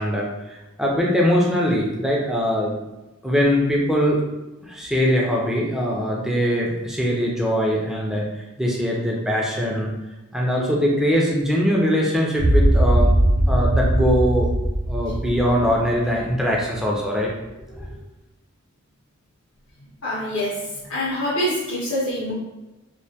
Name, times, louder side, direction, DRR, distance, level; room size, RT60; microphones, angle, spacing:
voice 1, 0.0-2.7 3.2-4.2 4.6-9.9 10.3-13.1 13.5-14.5 14.9-17.3 17.8-17.9, equal, ahead, -3 dB, 0.3 m, -22 dB
sound 1, 12.4-16.7, right 1 dB, 70° right, 0.6 m, -20 dB
voice 2, 20.0-20.6 20.9-22.3, equal, 70° left, -7 dB, 0.6 m, -25 dB
2.1 x 2.1 x 2.7 m, 1.0 s
head